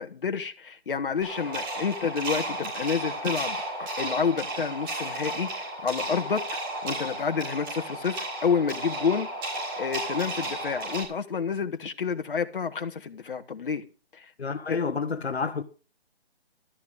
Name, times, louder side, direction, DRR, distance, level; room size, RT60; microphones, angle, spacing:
voice 1, 0.0-9.3 9.8-13.8 14.1-14.3 14.7-14.8, left 6 dB, 55° left, 1.5 m, -29 dB
sound 1, 1.2-11.0, right 1 dB, 20° right, 4.3 m, -33 dB
voice 2, 14.4-15.6, left 5 dB, 85° left, 1.3 m, -29 dB
13.0 x 5.7 x 7.9 m
hypercardioid pair, 160°, 31 cm